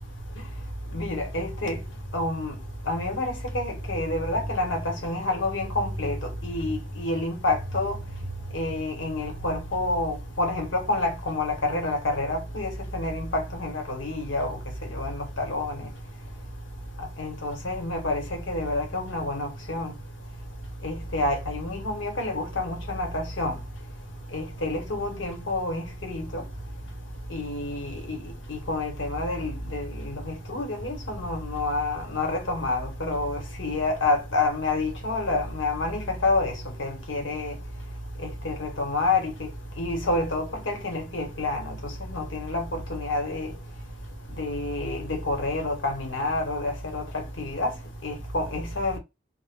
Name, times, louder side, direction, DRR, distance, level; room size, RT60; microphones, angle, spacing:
voice 1, 0.9-1.8 2.1-2.5 2.9-6.2 6.4-8.0 8.5-14.6 14.9-15.9 17.2-19.9 20.8-23.6 24.3-26.4 27.3-28.2 28.5-36.5 36.8-37.5 38.4-39.3 39.8-43.5 44.4-47.7 48.0-49.0, left 2 dB, 90° left, 0.9 m, -28 dB
2.1 x 2.0 x 3.3 m
head